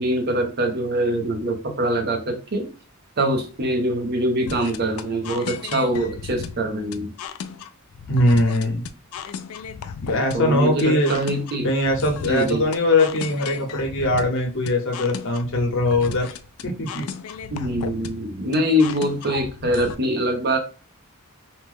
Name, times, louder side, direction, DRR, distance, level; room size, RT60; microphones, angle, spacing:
voice 1, 0.0-2.7 3.2-7.1 10.3-11.7 12.2-12.6 17.5-20.6, equal, 50° right, 4 dB, 0.7 m, -23 dB
sound 1, 4.5-19.9, left 7 dB, 85° left, 0.4 m, -35 dB
voice 2, 8.1-8.8 10.0-11.1 11.6-16.3 16.6-17.0, left 1 dB, 60° left, 1 dB, 1.0 m, -21 dB
2.9 x 2.2 x 3.4 m, 0.34 s
head